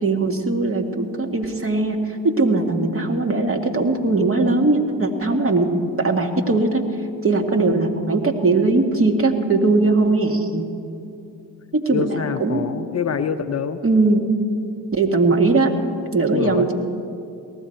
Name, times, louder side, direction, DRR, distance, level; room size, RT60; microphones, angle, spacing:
voice 1, 0.0-6.9 7.2-10.7 11.7-12.7 13.8-14.3 14.9-15.7 16.1-16.7, right 3 dB, 30° right, 3 dB, 1.9 m, -20 dB
voice 2, 11.9-13.8 16.3-16.7, left 7 dB, 35° left, 10 dB, 0.7 m, -25 dB
19.0 x 14.0 x 4.6 m, 2.5 s
hypercardioid pair, 50°, 43 cm